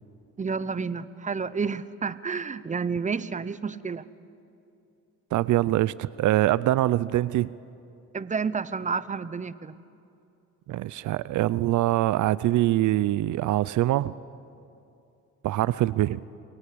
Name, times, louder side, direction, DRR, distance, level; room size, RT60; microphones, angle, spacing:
voice 1, 0.4-4.0 8.1-9.7, right 5 dB, 25° right, 16 dB, 0.9 m, -30 dB
voice 2, 5.3-7.5 10.7-14.1 15.4-16.2, right 15 dB, 75° right, 19 dB, 0.6 m, -24 dB
29.0 x 22.0 x 8.6 m, 2.6 s
cardioid pair, 90°, 30 cm